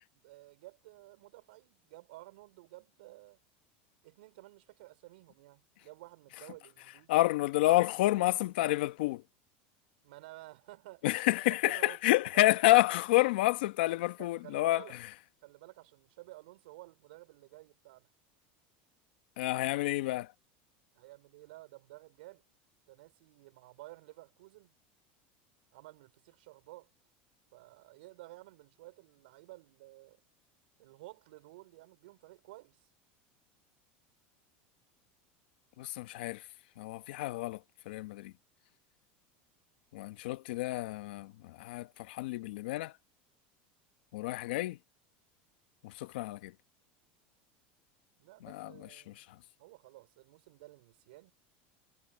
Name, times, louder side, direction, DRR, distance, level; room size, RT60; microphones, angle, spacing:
voice 1, 0.2-3.4 4.0-7.3 10.0-11.3 11.6-12.4 14.2-15.0 15.4-18.1 20.9-22.4 22.9-24.8 25.7-26.9 27.5-30.2 30.8-32.8 48.2-49.3 49.6-51.3, right 20 dB, 80° right, 4.2 m, -53 dB
voice 2, 7.1-9.2 11.0-14.8 19.4-20.3 35.8-36.4 36.8-37.6 37.9-38.3 39.9-42.9 44.1-44.8 45.8-46.5 48.4-48.7 49.1-49.2, left 17 dB, 80° left, 1.1 m, -29 dB
supercardioid pair, 125°, 5 cm